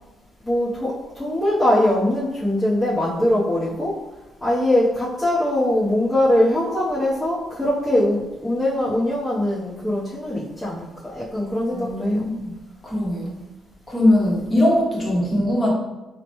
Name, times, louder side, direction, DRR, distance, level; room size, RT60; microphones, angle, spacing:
voice 1, 0.4-4.0 4.4-12.3, left 1 dB, 10° left, -9 dB, 0.8 m, -22 dB
voice 2, 11.7-12.5 12.8-13.3 13.9-15.7, left 1 dB, 25° left, -4 dB, 1.1 m, -20 dB
3.9 x 2.1 x 2.9 m, 1.1 s
cardioid pair, 90°, 0 cm